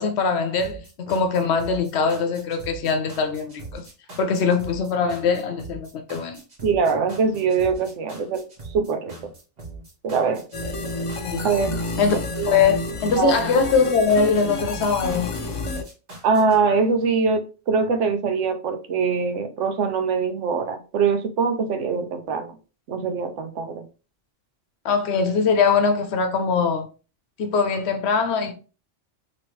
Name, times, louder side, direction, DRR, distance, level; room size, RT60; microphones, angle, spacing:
voice 1, 0.0-3.8 4.2-6.4 11.2-11.5 12.0-12.1 12.5-15.3 24.8-26.9 27.4-28.5, left 5 dB, 70° left, 0.9 m, -22 dB
sound 1, 0.6-16.6, right 3 dB, 40° right, 1.2 m, -41 dB
voice 2, 6.6-8.4 8.7-9.1 10.0-10.4 11.4-11.8 12.4-12.5 13.1-13.4 16.2-22.6 22.9-23.8, right 5 dB, 90° right, 1.0 m, -23 dB
sound 2, 10.5-15.8, left 2 dB, 40° left, 0.4 m, -30 dB
3.0 x 3.0 x 3.0 m
omnidirectional pair, 1.2 m